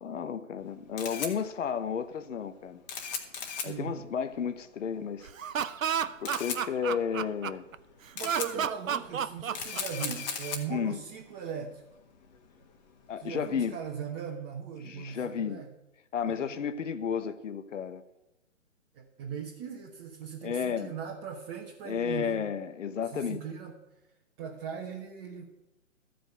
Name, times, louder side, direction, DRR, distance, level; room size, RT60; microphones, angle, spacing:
voice 1, 0.0-2.8 3.6-5.3 6.2-7.6 8.5-8.6 10.7-11.0 13.1-13.8 14.8-15.6 16.1-18.0 20.4-20.9 21.8-23.4, left 7 dB, 65° left, 10 dB, 1.0 m, -32 dB
Camera, 0.6-14.0, left 6 dB, 35° left, 1.5 m, -40 dB
voice 2, 3.5-3.9 8.1-11.8 13.2-15.7 16.3-16.4 18.9-22.5 23.1-23.8 24.4-25.4, right 7 dB, 20° right, -2 dB, 1.1 m, -39 dB
Laughter, 5.3-7.8 8.2-10.3, right 8 dB, 80° right, 0.7 m, -31 dB
13.5 x 5.2 x 7.9 m, 0.91 s
hypercardioid pair, 145°, 39 cm